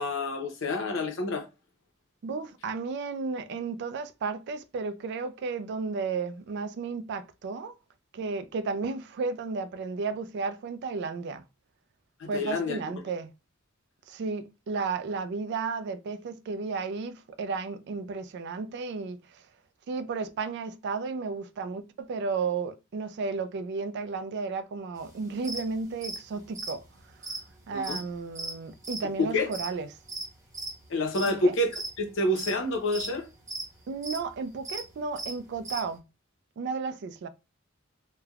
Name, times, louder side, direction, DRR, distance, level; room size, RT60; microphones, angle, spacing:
voice 1, 0.0-1.5 12.2-12.8 27.7-28.0 29.2-29.5 30.9-31.7 32.0-33.3, left 1 dB, 65° left, 0.7 m, -28 dB
voice 2, 2.2-7.7 8.1-11.4 12.3-13.3 14.1-19.4 19.9-26.8 27.7-29.9 31.2-31.6 33.9-36.0 36.6-37.3, right 4 dB, 60° right, 0.3 m, -33 dB
sound 1, 25.1-25.2 25.4-25.6 25.9-30.3 30.5-30.9 31.1-31.4 31.7-32.0 32.3-33.2 33.5-33.7 33.9-34.2 34.6-34.8 35.1-35.8, right 2 dB, 15° right, 1.0 m, -37 dB
3.2 x 2.1 x 2.3 m
head